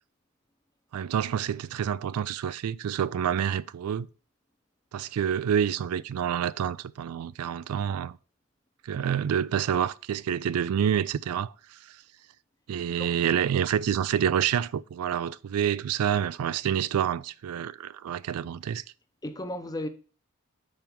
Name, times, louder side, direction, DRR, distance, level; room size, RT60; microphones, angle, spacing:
voice 1, 0.9-4.1 4.9-8.2 8.8-12.0 12.7-18.8, right 8 dB, 90° right, 0.3 m, -28 dB
voice 2, 12.9-13.2 19.2-19.9, left 1 dB, 15° left, 0.6 m, -35 dB
5.3 x 4.4 x 6.0 m
head